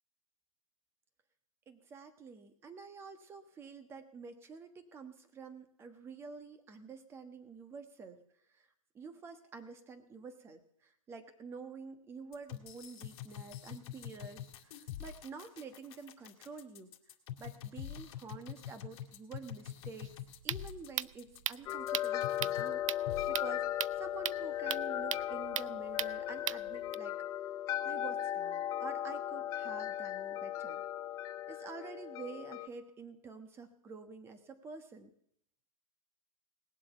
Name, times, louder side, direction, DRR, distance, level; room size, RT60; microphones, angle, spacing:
voice 1, 1.7-8.2 8.5-8.7 8.9-16.9 17.4-20.1 20.4-27.2 27.8-30.8 31.5-35.1, right 5 dB, 15° right, 9 dB, 1.3 m, -49 dB
sound 1, 12.3-22.7 23.1-23.3, left 11 dB, 50° left, 2.4 m, -45 dB
sound 2, 20.0-27.0, right 12 dB, 65° right, 0.5 m, -39 dB
sound 3, 21.7-32.7, left 12 dB, 20° left, 0.5 m, -37 dB
19.5 x 7.7 x 6.8 m, 0.70 s
hypercardioid pair, 155°, 18 cm